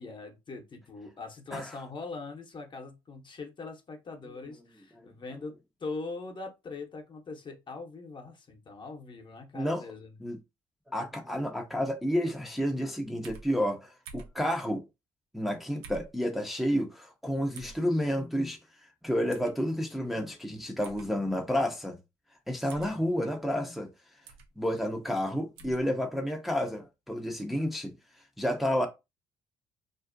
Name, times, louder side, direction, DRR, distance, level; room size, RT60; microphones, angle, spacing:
voice 1, 0.0-10.2 22.7-23.0, left 3 dB, 40° left, 0.8 m, -42 dB
voice 2, 10.9-14.8 15.3-22.0 22.5-23.9 24.6-28.9, equal, ahead, 0.5 m, -30 dB
sound 1, 13.2-13.5 14.1-14.4 15.8-16.1 17.5-17.8 19.3-19.5 20.8-21.1 22.7-22.9 24.3-24.5 25.6-25.8, right 4 dB, 90° right, 0.4 m, -47 dB
2.5 x 2.0 x 2.5 m
hypercardioid pair, 55°, 13 cm